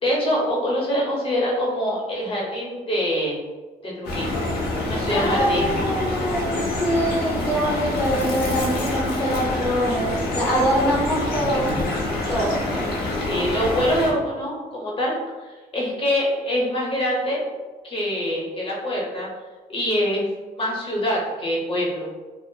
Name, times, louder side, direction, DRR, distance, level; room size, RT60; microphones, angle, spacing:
voice 1, 0.0-3.4 3.8-4.4 4.9-5.7 13.3-17.4 17.8-19.3 19.7-20.3 20.6-22.1, equal, 35° left, -3 dB, 0.8 m, -24 dB
sound 1, 4.0-14.1, left 2 dB, 85° left, 0.6 m, -26 dB
voice 2, 5.1-11.8 12.3-12.7, equal, 10° left, -6 dB, 0.4 m, -24 dB
2.8 x 2.0 x 2.2 m, 1.3 s
cardioid pair, 90°, 16 cm